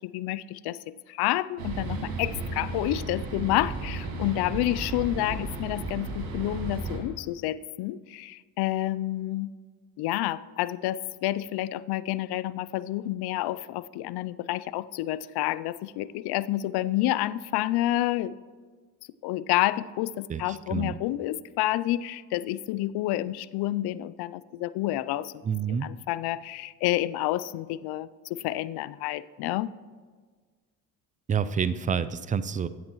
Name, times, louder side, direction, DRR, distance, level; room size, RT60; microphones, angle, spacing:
voice 1, 0.0-0.8 1.1-9.5 10.0-18.4 19.2-25.4 25.8-29.7, left 15 dB, 55° left, 18 dB, 0.5 m, -29 dB
sound 1, 1.6-7.0, right 3 dB, 85° right, 2.2 m, -34 dB
voice 2, 20.3-20.9 25.4-25.9 31.3-32.7, right 7 dB, 20° right, 15 dB, 0.3 m, -28 dB
13.5 x 8.5 x 3.0 m, 1.5 s
supercardioid pair, 70°, 46 cm